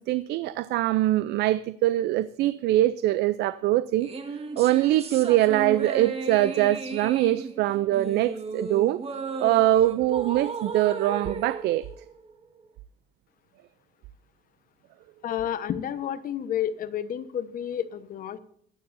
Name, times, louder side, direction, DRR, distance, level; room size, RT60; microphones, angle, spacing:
voice 1, 0.0-4.1 4.6-9.0 9.4-11.9, right 15 dB, 75° right, 0.5 m, -23 dB
sound 1, 4.0-12.6, right 4 dB, 35° right, 2.0 m, -35 dB
voice 2, 15.2-18.4, left 10 dB, 55° left, 1.2 m, -30 dB
22.0 x 9.6 x 2.7 m
cardioid pair, 110°, 17 cm